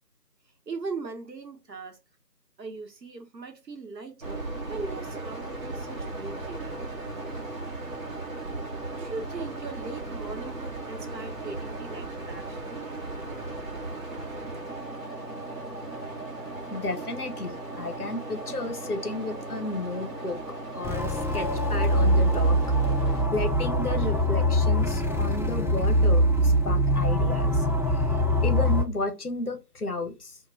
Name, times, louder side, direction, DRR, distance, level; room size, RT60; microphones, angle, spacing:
voice 1, 0.7-2.0 2.6-6.9 8.9-12.9, right 4 dB, 85° right, 0.9 m, -39 dB
sound 1, 4.2-23.2, right 2 dB, 55° right, 0.8 m, -37 dB
voice 2, 16.7-20.4 20.7-22.6 23.3-27.6 28.4-30.4, left 2 dB, 65° left, 0.7 m, -32 dB
sound 2, 20.8-28.8, equal, 5° right, 0.3 m, -23 dB
2.2 x 2.1 x 3.3 m
figure-of-eight pair, 180°, 49 cm